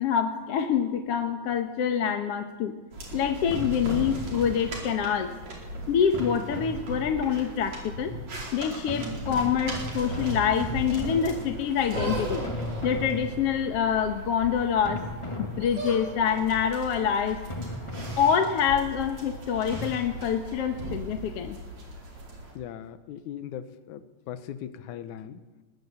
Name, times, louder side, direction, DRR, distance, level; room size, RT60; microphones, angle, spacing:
voice 1, 0.0-2.7 3.1-5.3 5.9-8.1 8.5-12.4 12.8-15.0 15.4-17.4 18.2-21.6, left 7 dB, 60° left, 6 dB, 1.9 m, -26 dB
sound 1, 2.9-22.5, right 1 dB, 65° right, 5.8 m, -37 dB
sound 2, 3.5-4.9 6.1-7.4 8.9-12.0 12.4-13.9 14.9-16.2 17.5-18.9 19.7-19.9, left 1 dB, 15° left, 1.2 m, -37 dB
voice 2, 22.6-25.4, left 10 dB, 85° left, 12 dB, 2.5 m, -39 dB
21.0 x 19.5 x 8.5 m, 1.3 s
omnidirectional pair, 3.4 m